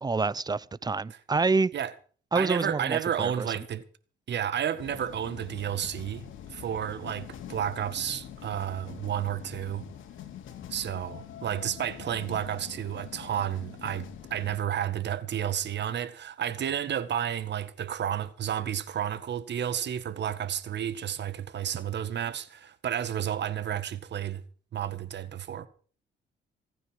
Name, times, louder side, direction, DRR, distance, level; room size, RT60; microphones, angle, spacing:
voice 1, 0.0-1.7 2.3-3.5, right 4 dB, 20° right, 0.7 m, -27 dB
voice 2, 2.4-3.8 4.3-6.2 6.5-9.9 10.7-24.4 24.7-25.7, right 9 dB, 60° right, 1.7 m, -31 dB
sound 1, 4.8-14.6, left 9 dB, 80° left, 2.9 m, -44 dB
25.5 x 9.6 x 4.7 m
cardioid pair, 90°, 20 cm